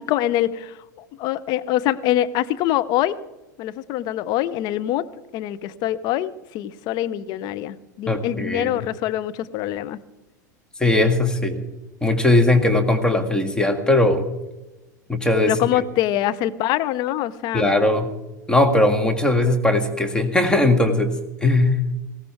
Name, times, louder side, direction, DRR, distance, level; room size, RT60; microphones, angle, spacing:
voice 1, 0.0-3.2 3.6-5.1 5.3-10.0 15.4-17.7, left 13 dB, 45° left, 15 dB, 0.8 m, -24 dB
voice 2, 8.1-8.8 10.8-11.6 12.0-14.3 15.1-15.6 17.5-18.1 18.5-21.1 21.4-21.9, left 2 dB, 10° left, 5 dB, 1.8 m, -19 dB
19.5 x 16.5 x 3.6 m, 1.0 s
figure-of-eight pair, 85°, 10 cm